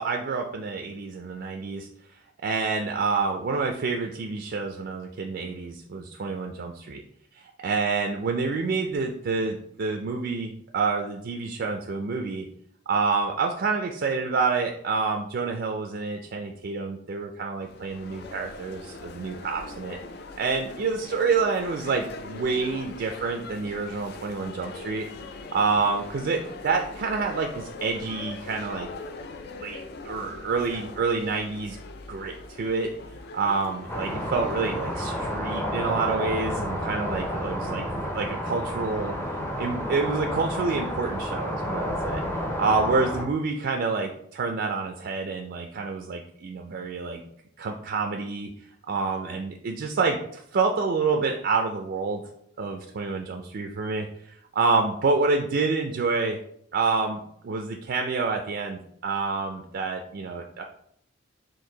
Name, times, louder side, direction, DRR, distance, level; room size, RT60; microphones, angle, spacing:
voice 1, 0.0-1.9 2.4-7.0 7.3-12.5 12.9-20.0 20.4-25.1 25.5-28.9 29.6-31.8 32.1-32.9 33.3-39.1 39.6-47.2 47.6-48.5 48.9-52.2 52.6-56.4 56.7-60.6, right 4 dB, 55° right, 3 dB, 0.4 m, -28 dB
sound 1, 17.6-35.4, left 3 dB, 55° left, 0.4 m, -41 dB
sound 2, 33.9-43.2, equal, 10° left, 0.6 m, -30 dB
4.4 x 2.6 x 3.8 m, 0.69 s
head